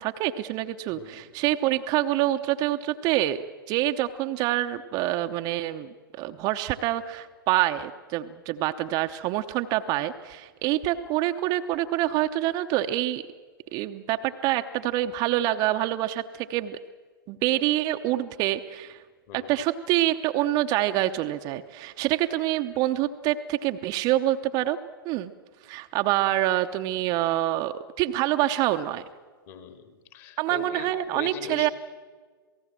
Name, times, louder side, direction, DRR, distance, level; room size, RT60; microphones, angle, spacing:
voice 1, 0.0-3.4 3.7-5.9 6.2-13.2 13.7-16.8 17.3-19.0 19.3-24.8 25.0-25.3 25.7-29.0 30.4-31.7, right 14 dB, 35° right, 8 dB, 0.8 m, -26 dB
voice 2, 0.9-1.2 19.3-19.5 29.5-31.7, left 7 dB, 40° left, 7 dB, 2.6 m, -40 dB
27.5 x 18.0 x 7.5 m, 1.5 s
figure-of-eight pair, 105°, 12 cm